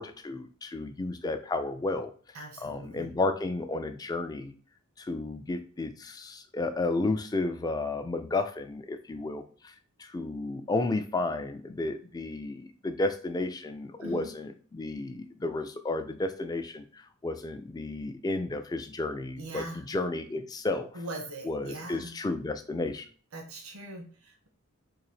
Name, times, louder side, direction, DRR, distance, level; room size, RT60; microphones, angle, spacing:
voice 1, 0.0-4.5 5.0-9.7 10.0-20.9 21.4-23.1, left 2 dB, 20° left, 8 dB, 0.3 m, -32 dB
voice 2, 2.3-3.1 14.0-14.3 19.4-19.8 20.9-22.1 23.3-24.5, right 2 dB, 85° right, 1 dB, 0.9 m, -41 dB
3.8 x 2.6 x 3.2 m, 0.43 s
head